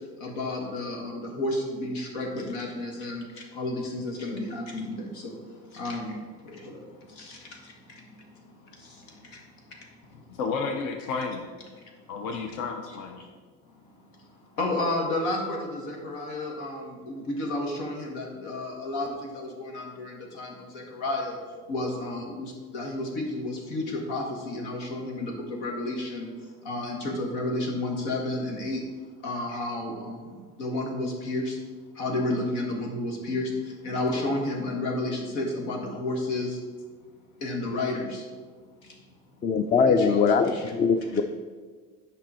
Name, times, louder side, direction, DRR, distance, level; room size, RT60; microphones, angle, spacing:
voice 1, 0.2-9.4 14.6-21.4 21.7-26.3 26.6-28.8 29.2-31.6 32.0-36.6 37.4-38.2 38.8-38.9 39.9-40.7, left 2 dB, 90° left, 0 dB, 1.8 m, -32 dB
voice 2, 10.3-11.5 12.1-13.2, left 4 dB, 65° left, 4 dB, 0.9 m, -31 dB
voice 3, 39.4-41.2, left 5 dB, 25° left, 9 dB, 0.4 m, -22 dB
8.0 x 5.3 x 4.3 m, 1.5 s
cardioid pair, 110°, 33 cm